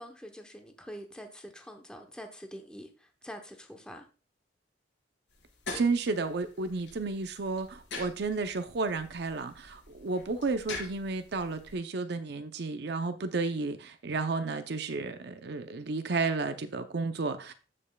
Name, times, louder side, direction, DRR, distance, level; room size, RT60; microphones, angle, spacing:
voice 1, 0.0-4.1, equal, 5° left, 0.8 m, -45 dB
sound 1, 5.3-11.7, left 3 dB, 75° left, 4.6 m, -45 dB
voice 2, 5.7-17.5, right 3 dB, 60° right, 0.6 m, -32 dB
15.0 x 5.3 x 2.2 m
head